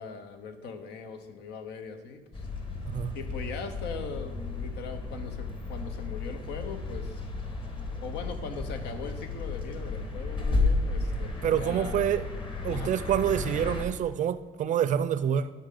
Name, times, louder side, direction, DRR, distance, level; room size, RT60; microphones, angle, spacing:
voice 1, 0.0-2.5 3.1-7.2 8.0-12.0 12.7-12.9, left 5 dB, 80° left, 1.0 m, -40 dB
sound 1, 2.3-13.8, left 3 dB, 30° left, 1.3 m, -33 dB
voice 2, 11.4-12.2 12.6-15.5, right 9 dB, 50° right, 0.5 m, -27 dB
12.0 x 5.5 x 3.8 m
cardioid pair, 110°, 17 cm